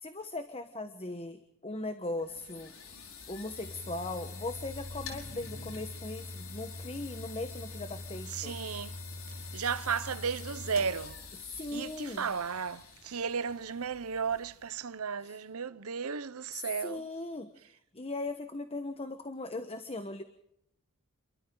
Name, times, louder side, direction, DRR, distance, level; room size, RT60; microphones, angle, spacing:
voice 1, 0.0-2.7 3.3-8.6 11.4-12.3 16.8-17.5 17.9-20.2, left 2 dB, 25° left, 1.2 m, -39 dB
sound 1, 2.0-14.8, left 3 dB, 65° left, 5.0 m, -44 dB
voice 2, 8.3-9.0 9.5-11.2 11.7-17.1, right 6 dB, 80° right, 0.8 m, -34 dB
28.5 x 23.5 x 3.9 m
head